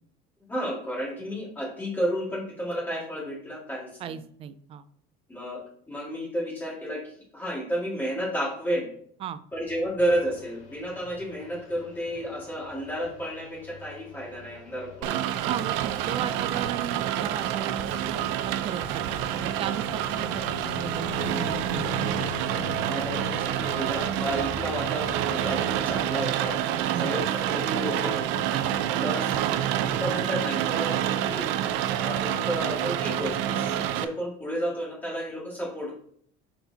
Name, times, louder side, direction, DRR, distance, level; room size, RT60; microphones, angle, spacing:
voice 1, 0.5-4.2 5.3-8.9 9.5-15.2 22.8-26.6 26.9-29.4 29.9-31.5 31.9-35.9, equal, 10° left, -4 dB, 2.0 m, -32 dB
voice 2, 4.0-4.8 9.2-9.4 15.4-22.3 26.9-27.1, right 9 dB, 30° right, 13 dB, 0.4 m, -36 dB
sound 1, 9.5-26.2, left 8 dB, 50° left, 0.5 m, -43 dB
sound 2, 10.0-15.0, left 5 dB, 75° left, 1.8 m, -52 dB
Rain, 15.0-34.0, right 11 dB, 85° right, 0.6 m, -28 dB
11.0 x 4.2 x 2.8 m, 0.62 s
cardioid pair, 175°, 19 cm